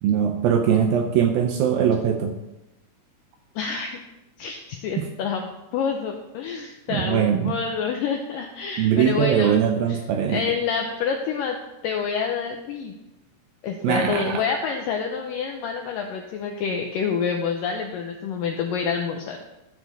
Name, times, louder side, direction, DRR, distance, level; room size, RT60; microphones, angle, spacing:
voice 1, 0.0-2.4 5.0-5.1 6.9-7.5 8.8-10.4 13.8-14.4, right 8 dB, 80° right, 5 dB, 2.2 m, -21 dB
voice 2, 3.6-4.0 4.4-9.6 10.3-11.6 11.8-12.9 13.6-19.4, left 6 dB, 85° left, 3 dB, 2.0 m, -27 dB
13.5 x 7.2 x 4.1 m, 0.94 s
omnidirectional pair, 4.8 m